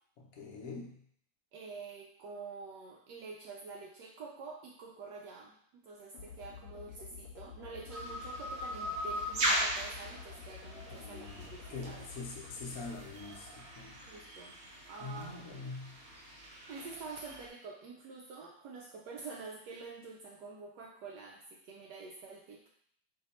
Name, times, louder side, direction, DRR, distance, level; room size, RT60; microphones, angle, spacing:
voice 1, 0.2-1.0 10.9-14.0 15.0-16.0, left 3 dB, 60° left, 0 dB, 1.0 m, -44 dB
voice 2, 1.5-12.1 14.1-14.6 14.9-15.3 16.7-22.7, right 4 dB, 75° right, -1 dB, 1.1 m, -47 dB
sound 1, 6.1-14.3, left 6 dB, 90° left, 1.3 m, -51 dB
sound 2, 7.9-17.5, right 1 dB, 50° right, 0.8 m, -39 dB
4.3 x 2.8 x 4.1 m, 0.66 s
omnidirectional pair, 2.0 m